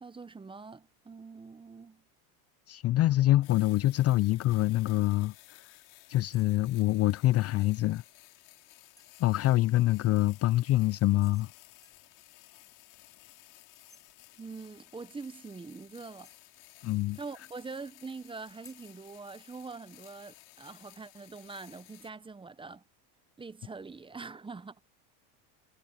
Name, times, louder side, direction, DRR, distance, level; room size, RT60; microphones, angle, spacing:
voice 1, 0.0-2.0 14.4-16.3 17.2-22.8 23.4-24.8, right 4 dB, 10° right, 0.8 m, -44 dB
voice 2, 2.7-5.3 6.1-8.0 9.2-11.5 16.8-17.2, left 15 dB, 35° left, 0.5 m, -25 dB
sound 1, 3.4-22.1, left 20 dB, 65° left, 5.4 m, -56 dB
sound 2, 6.3-6.5 6.8-7.3 9.0-9.8 11.2-11.5 11.8-12.1 13.7-14.0 16.2-17.1 18.6-18.8, left 2 dB, 10° left, 7.1 m, -61 dB
supercardioid pair, 115°, 42 cm